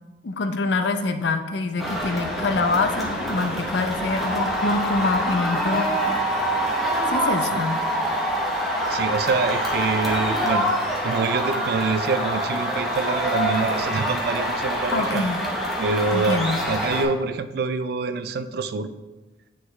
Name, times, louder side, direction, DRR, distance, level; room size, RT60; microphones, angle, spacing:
voice 1, 0.2-6.0 7.1-7.8 14.9-15.4 16.1-16.7, left 3 dB, 70° left, 8 dB, 0.5 m, -25 dB
sound 1, 1.8-17.0, equal, ahead, 0.8 m, -25 dB
voice 2, 8.9-10.7 11.0-15.3 15.8-18.9, right 4 dB, 55° right, 12 dB, 0.3 m, -26 dB
9.3 x 3.8 x 3.2 m, 1.2 s
head